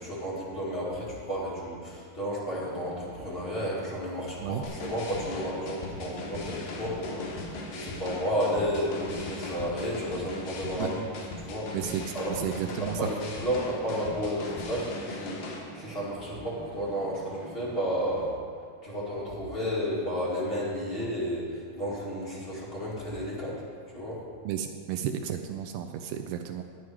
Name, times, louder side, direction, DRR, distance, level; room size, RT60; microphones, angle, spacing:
voice 1, 0.0-11.0 11.4-11.7 12.1-18.3 18.8-23.6 23.9-24.2, equal, 25° left, -7 dB, 1.3 m, -32 dB
sound 1, 2.5-18.3, right 1 dB, 40° right, 2.9 m, -49 dB
sound 2, 4.6-15.6, left 2 dB, 75° left, 3.2 m, -39 dB
voice 2, 12.3-13.0 24.5-26.6, right 10 dB, 80° right, 6 dB, 2.2 m, -32 dB
11.0 x 9.2 x 4.7 m, 2.1 s
omnidirectional pair, 4.6 m